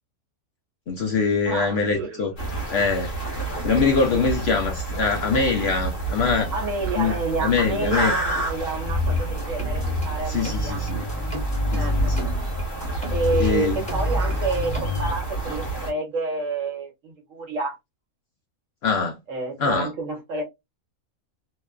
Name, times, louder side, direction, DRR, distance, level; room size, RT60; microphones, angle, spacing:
voice 1, 0.9-2.3 2.7-3.1 3.6-6.5 7.0-7.1 7.4-8.1 10.3-11.0 11.7-12.3 13.4-13.8 18.8-19.2 19.6-19.9, left 4 dB, 60° left, 0.7 m, -23 dB
voice 2, 1.5-2.3 6.5-10.8 11.7-12.3 13.1-17.8 19.3-20.4, right 3 dB, 65° right, 1.3 m, -29 dB
sound 1, 2.4-15.9, right 3 dB, 40° left, 1.2 m, -30 dB
sound 2, 8.8-10.1 10.4-13.5 13.9-15.1, left 2 dB, 5° left, 0.9 m, -26 dB
3.0 x 2.2 x 2.2 m
omnidirectional pair, 1.5 m